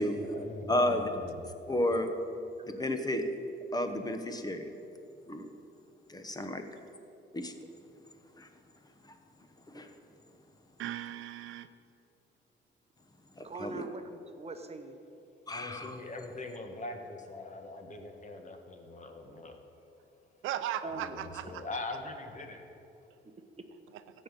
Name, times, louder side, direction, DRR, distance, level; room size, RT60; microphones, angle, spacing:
voice 1, 0.0-1.4 15.5-19.6 20.8-22.7, left 2 dB, 40° left, 4 dB, 1.6 m, -42 dB
voice 2, 0.7-1.1 1.7-2.1 2.7-3.2 3.7-4.7 5.3-5.5 6.1-6.6 7.3-7.5 8.4-8.5 9.7-9.9 13.4-13.8 15.5-15.9, left 1 dB, 20° left, 6 dB, 1.1 m, -32 dB
voice 3, 10.8-11.7 20.4-21.6 23.9-24.0, right 12 dB, 85° right, 11 dB, 0.6 m, -37 dB
voice 4, 13.4-15.0 20.8-21.2 23.4-23.7, right 3 dB, 30° right, 7 dB, 1.0 m, -42 dB
13.5 x 5.4 x 9.0 m, 2.8 s
cardioid pair, 90°, 20 cm